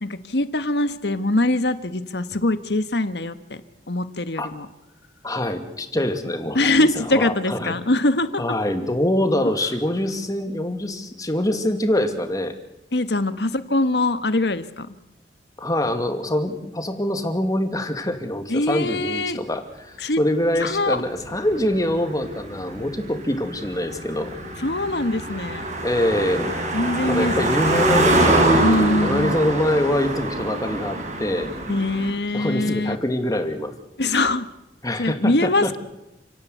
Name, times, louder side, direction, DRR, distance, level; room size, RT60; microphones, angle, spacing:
voice 1, 0.0-3.6 3.9-4.7 6.5-8.4 12.9-14.9 18.5-19.4 20.0-20.2 20.6-21.0 24.6-25.6 26.7-28.0 28.6-29.3 31.7-33.0 34.0-34.5 35.0-35.8, left 2 dB, 70° left, 12 dB, 1.5 m, -23 dB
voice 2, 5.2-6.9 7.1-7.8 8.4-12.5 15.6-24.3 25.8-26.5 27.1-31.5 32.3-33.7 34.8-35.7, left 1 dB, 20° left, 7 dB, 2.5 m, -24 dB
Car passing by, 21.0-32.1, right 2 dB, 45° right, 6.4 m, -24 dB
29.5 x 17.5 x 8.3 m, 0.91 s
head